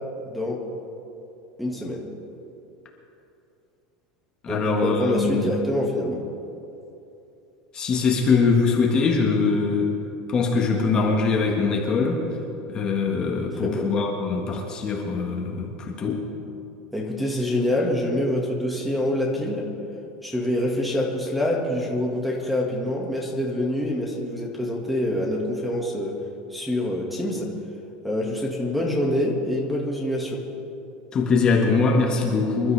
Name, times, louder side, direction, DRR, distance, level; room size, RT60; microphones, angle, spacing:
voice 1, 0.3-0.6 1.6-2.1 4.5-6.2 13.6-13.9 16.9-19.7 20.2-26.2 26.5-27.5 28.0-30.4, left 1 dB, ahead, -1 dB, 1.8 m, -26 dB
voice 2, 4.4-5.5 7.7-9.9 10.3-12.2 12.7-16.2 31.1-32.7, left 4 dB, 25° left, 0 dB, 1.6 m, -22 dB
26.0 x 12.5 x 3.4 m, 2.8 s
supercardioid pair, 160°, 3 cm